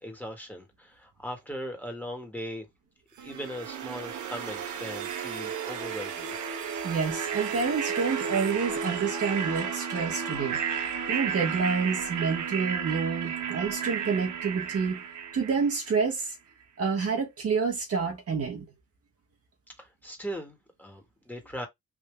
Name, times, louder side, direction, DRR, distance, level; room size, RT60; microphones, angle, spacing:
voice 1, 0.0-2.6 3.2-6.4 19.8-21.7, equal, 5° left, 1.5 m, -39 dB
sound 1, 3.2-16.1, right 7 dB, 75° right, 1.0 m, -33 dB
voice 2, 6.8-10.6 11.1-15.0 15.3-16.3 16.8-18.6, right 5 dB, 50° right, 1.3 m, -28 dB
3.6 x 2.6 x 3.3 m
cardioid pair, 90°, 30 cm